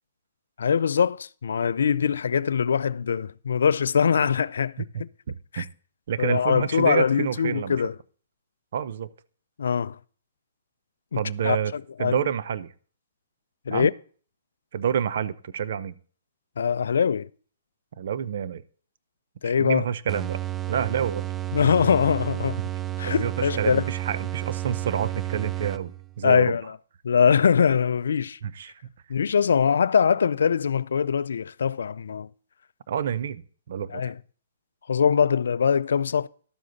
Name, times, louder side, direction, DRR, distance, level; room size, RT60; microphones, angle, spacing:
voice 1, 0.6-5.1 5.5-5.7 6.2-8.0 9.6-10.0 11.1-12.2 13.7-13.9 16.6-17.3 19.4-19.9 21.5-22.7 23.0-23.8 26.2-26.8 27.0-28.4 29.1-32.3 33.9-34.2 34.9-36.3, left 7 dB, 75° left, 0.4 m, -23 dB
voice 2, 5.3-5.6 6.1-7.8 8.7-9.1 11.1-11.7 12.0-12.7 13.7-13.9 14.7-15.9 18.0-18.6 19.4-20.4 20.7-21.3 23.0-25.9 26.2-26.6 28.4-28.7 32.9-34.0, right 8 dB, 60° right, 0.7 m, -28 dB
sound 1, 20.1-26.2, right 14 dB, 20° right, 0.4 m, -31 dB
12.0 x 7.6 x 4.0 m
hypercardioid pair, 140°, 0 cm